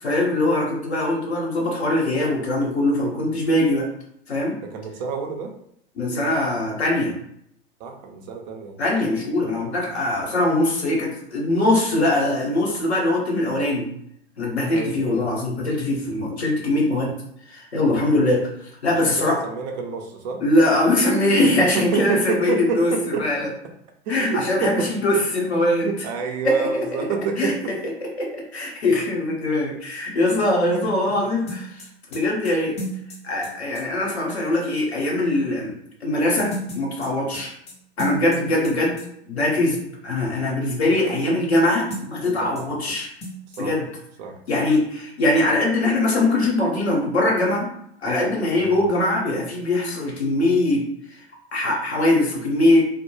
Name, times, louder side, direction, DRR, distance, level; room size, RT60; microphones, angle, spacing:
voice 1, 0.0-3.9 4.3-4.6 5.9-7.2 8.8-13.9 14.4-17.1 17.5-18.5 18.8-19.4 20.4-23.5 24.1-25.9 26.4-26.8 27.4-27.5 28.0-31.8 32.1-32.8 33.2-35.7 36.0-37.5 38.0-39.0 39.3-43.1 43.6-43.9 44.5-47.7 48.0-50.8 51.5-52.9, left 1 dB, 80° left, -2 dB, 0.9 m, -22 dB
voice 2, 4.6-5.5 7.8-8.8 14.7-15.2 18.8-20.4 21.4-23.2 24.1-24.9 25.8-27.7 30.7-30.8 42.3-42.7 43.6-43.7 44.2-44.3 48.6-48.8, right 5 dB, 45° right, 2 dB, 0.5 m, -28 dB
sound 1, 31.5-33.8 36.4-38.7 39.0-39.1 41.9-42.6 42.9-43.0 43.2-43.6, right 1 dB, 20° left, 0.6 m, -34 dB
2.2 x 2.1 x 3.0 m, 0.72 s
figure-of-eight pair, 95°, 32 cm